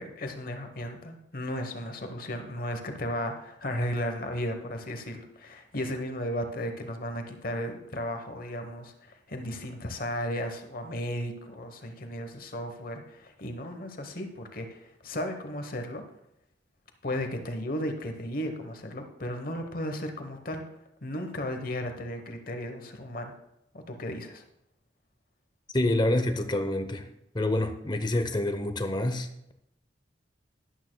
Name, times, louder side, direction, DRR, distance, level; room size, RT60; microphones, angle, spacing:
voice 1, 0.0-16.0 17.0-20.6 21.0-23.3 23.9-24.4, equal, 50° left, 6 dB, 1.0 m, -35 dB
voice 2, 25.7-27.1 27.3-29.5, left 1 dB, 25° left, 8 dB, 0.8 m, -27 dB
12.5 x 11.0 x 2.3 m, 0.82 s
head